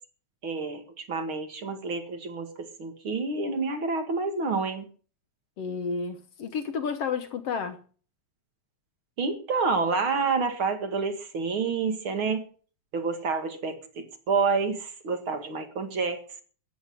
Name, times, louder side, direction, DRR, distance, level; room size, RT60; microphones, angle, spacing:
voice 1, 0.4-4.9 9.2-12.4 12.9-16.4, right 4 dB, 50° right, 2.5 m, -28 dB
voice 2, 5.6-7.8, left 5 dB, 65° left, 1.9 m, -31 dB
14.5 x 10.5 x 6.4 m
omnidirectional pair, 3.3 m